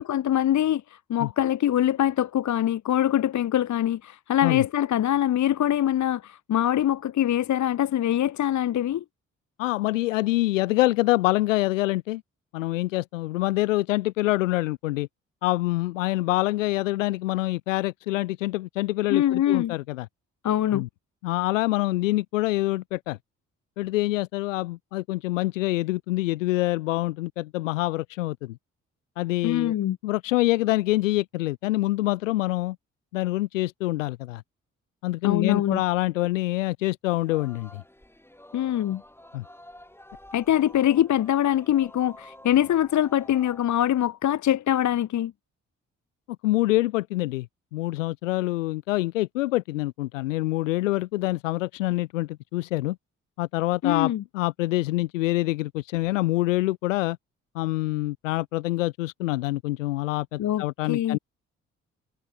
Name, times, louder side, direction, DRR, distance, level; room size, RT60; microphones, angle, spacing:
voice 1, 0.0-9.0 19.1-19.7 20.4-20.8 29.4-30.0 35.2-35.8 38.5-39.0 40.3-45.3 53.8-54.2 60.4-61.2, left 11 dB, 50° left, 1.2 m, -23 dB
voice 2, 9.6-12.2 12.5-15.1 15.4-20.1 20.7-20.9 21.2-23.2 23.8-28.6 29.2-29.7 30.0-32.8 33.1-34.4 35.0-37.8 39.3-39.4 46.4-47.5 47.7-53.0 53.4-57.2 57.5-61.2, left 18 dB, 80° left, 0.6 m, -26 dB
Singing, 37.2-43.6, left 1 dB, 5° left, 7.2 m, -49 dB
figure-of-eight pair, 40°, 38 cm